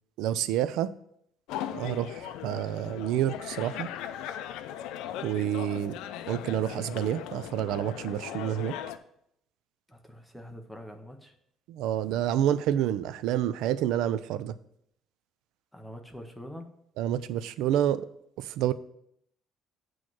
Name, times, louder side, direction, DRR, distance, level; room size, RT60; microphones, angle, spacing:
voice 1, 0.2-0.9 1.7-3.9 5.2-6.0 6.3-8.7 11.7-14.5 17.0-18.1 18.4-18.7, right 11 dB, 75° right, 0.3 m, -28 dB
sound 1, 1.5-9.0, left 11 dB, 80° left, 0.4 m, -38 dB
voice 2, 9.9-11.4 15.7-16.7, equal, ahead, 0.6 m, -44 dB
8.4 x 3.1 x 6.0 m
cardioid pair, 180°, 0 cm